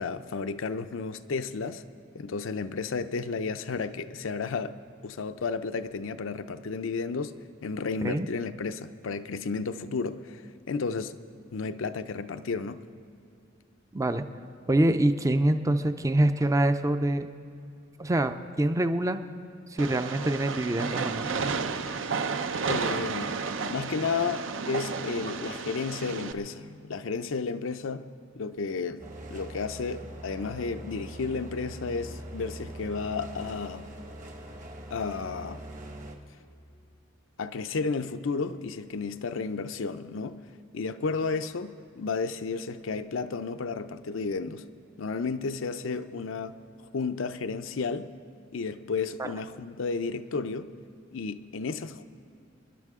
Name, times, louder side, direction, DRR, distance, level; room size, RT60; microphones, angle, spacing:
voice 1, 0.0-1.8 2.1-11.2 11.5-12.9 22.7-23.4 23.7-28.1 28.4-33.9 34.9-35.6 37.4-40.4 40.7-44.6 45.0-46.6 46.9-48.1 48.5-50.7 51.1-52.0, left 4 dB, 80° left, 0.5 m, -32 dB
voice 2, 13.9-14.2 14.7-17.3 18.0-19.2 19.7-21.2 49.2-49.3, right 1 dB, 15° right, 0.4 m, -25 dB
Train, 19.8-26.3, right 5 dB, 75° right, 0.6 m, -32 dB
sound 1, 29.0-36.2, right 1 dB, 40° right, 1.2 m, -42 dB
27.0 x 11.0 x 3.6 m
head